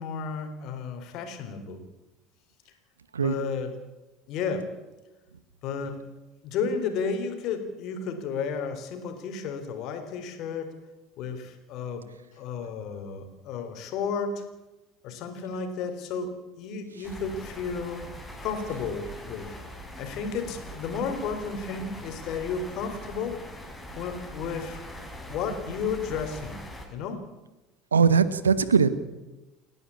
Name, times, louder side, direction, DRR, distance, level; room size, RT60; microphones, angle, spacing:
voice 1, 0.0-1.8 3.2-3.8 4.3-4.7 5.6-6.1 6.4-10.8 11.2-12.1 12.3-14.4 15.0-18.1 18.4-19.6 20.0-23.4 23.9-24.8 25.3-26.6 26.9-27.2, left 5 dB, 55° left, 7 dB, 3.8 m, -32 dB
sound 1, 17.0-26.9, equal, 5° left, 5.6 m, -42 dB
voice 2, 27.9-29.0, right 6 dB, 85° right, 15 dB, 1.1 m, -20 dB
29.0 x 11.0 x 8.6 m, 1.1 s
hypercardioid pair, 70°, 0 cm